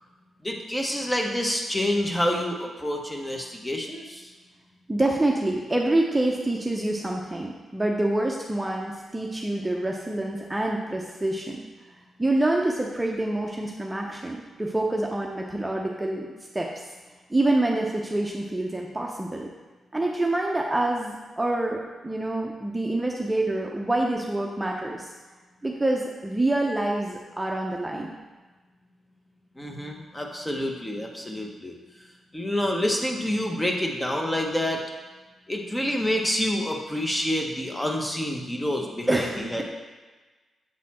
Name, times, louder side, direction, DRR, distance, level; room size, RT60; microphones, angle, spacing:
voice 1, 0.4-4.3 29.6-31.7 32.3-34.8 35.5-39.6, left 1 dB, 15° left, 1 dB, 1.1 m, -28 dB
voice 2, 4.9-11.6 12.2-16.3 16.5-16.7 17.3-19.5 19.9-25.1 25.6-28.1 39.1-39.6, right 1 dB, 15° right, -1 dB, 0.8 m, -26 dB
7.6 x 4.1 x 4.3 m, 1.3 s
cardioid pair, 65°, 0 cm